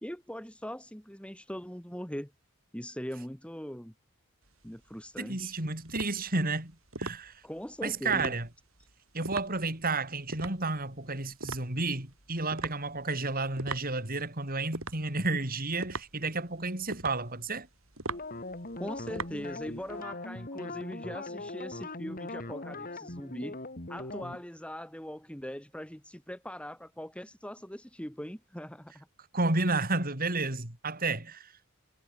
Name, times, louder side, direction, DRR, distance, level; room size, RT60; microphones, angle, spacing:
voice 1, 0.0-2.3 2.7-3.9 4.6-5.5 7.4-8.4 18.8-23.6 23.9-29.1, equal, 5° left, 2.7 m, -41 dB
sound 1, 4.4-20.0, right 3 dB, 65° right, 7.4 m, -42 dB
voice 2, 5.2-7.4 7.8-8.5 9.1-17.7 29.3-31.5, right 3 dB, 40° right, 4.5 m, -31 dB
sound 2, 18.1-24.4, left 2 dB, 40° left, 3.4 m, -40 dB
head